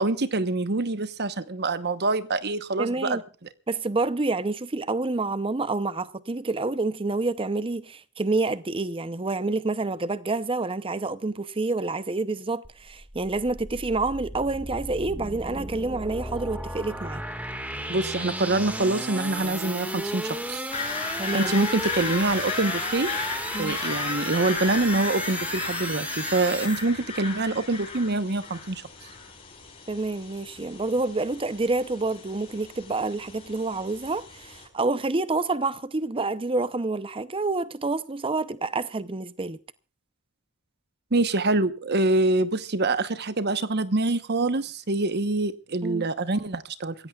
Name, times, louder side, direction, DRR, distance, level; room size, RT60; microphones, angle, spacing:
voice 1, 0.0-3.2 17.9-20.7 21.3-23.1 23.6-28.8 41.1-46.9, right 2 dB, 45° right, 1.0 m, -25 dB
voice 2, 2.8-3.2 3.7-17.2 21.2-21.5 23.5-23.8 29.9-39.6 45.8-46.1, right 3 dB, 25° right, 0.7 m, -28 dB
sound 1, 12.6-26.8, right 1 dB, 5° right, 1.8 m, -34 dB
sound 2, 20.7-34.7, left 4 dB, 25° left, 4.6 m, -35 dB
26.5 x 16.0 x 2.4 m
head